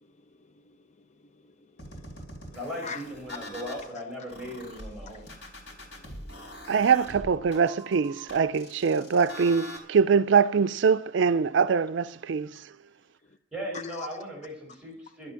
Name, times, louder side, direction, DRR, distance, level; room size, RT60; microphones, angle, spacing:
voice 1, 0.6-1.1 1.3-2.1 2.8-3.0 6.0-6.5 13.7-14.1, left 5 dB, 40° left, 0.5 m, -43 dB
sound 1, 1.8-3.9 4.3-9.8, equal, 70° left, 4.1 m, -43 dB
voice 2, 2.5-5.3 13.5-15.3, equal, 5° right, 6.0 m, -38 dB
voice 3, 6.7-12.6, right 6 dB, 75° right, 0.4 m, -23 dB
12.0 x 11.5 x 5.8 m
head